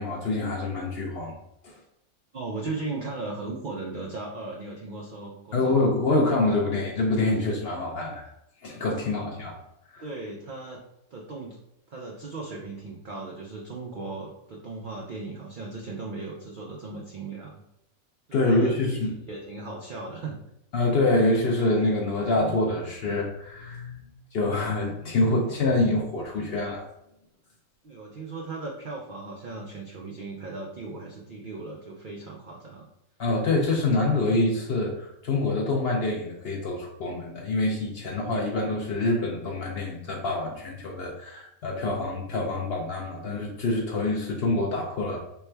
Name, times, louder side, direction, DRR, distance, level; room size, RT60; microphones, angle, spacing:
voice 1, 0.0-1.3 1.6-1.7 5.5-8.3 8.6-9.5 9.9-10.0 18.3-19.1 20.7-26.8 33.2-45.2, left 2 dB, 60° left, -1 dB, 0.6 m, -26 dB
voice 2, 2.3-5.7 9.0-9.6 10.0-10.8 11.1-11.6 11.9-17.6 18.3-19.0 19.3-20.4 27.8-32.9, right 3 dB, 85° right, -2 dB, 0.4 m, -37 dB
3.3 x 2.1 x 4.3 m, 0.80 s
omnidirectional pair, 1.5 m